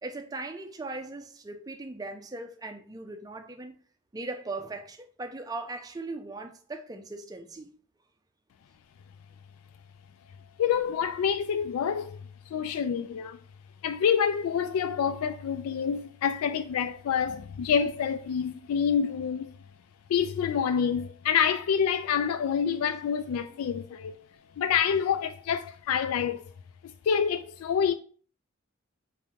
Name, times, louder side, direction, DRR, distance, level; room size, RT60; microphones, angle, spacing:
voice 1, 0.0-3.8 4.1-7.7, right 2 dB, 15° right, 0.4 m, -39 dB
voice 2, 10.6-12.2 12.5-13.4 13.8-19.5 20.1-24.2 24.6-26.5 27.1-27.9, left 7 dB, 90° left, 0.3 m, -27 dB
4.8 x 3.5 x 2.8 m
head